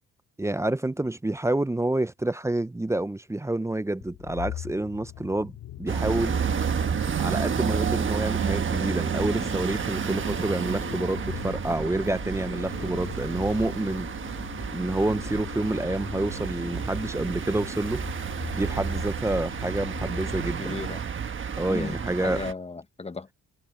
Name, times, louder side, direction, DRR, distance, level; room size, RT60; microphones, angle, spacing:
voice 1, 0.4-5.5 5.8-6.3 7.2-14.1 14.7-18.1 18.5-20.8 21.6-22.4, right 1 dB, 10° right, 0.6 m, -28 dB
sound 1, 4.0-20.9, left 13 dB, 85° left, 2.6 m, -41 dB
sound 2, 5.9-22.5, right 7 dB, 40° right, 1.3 m, -31 dB
sound 3, 6.3-21.6, right 9 dB, 65° right, 2.9 m, -40 dB
voice 2, 20.6-21.0 21.7-23.3, left 4 dB, 20° left, 1.1 m, -35 dB
cardioid pair, 90°, 30 cm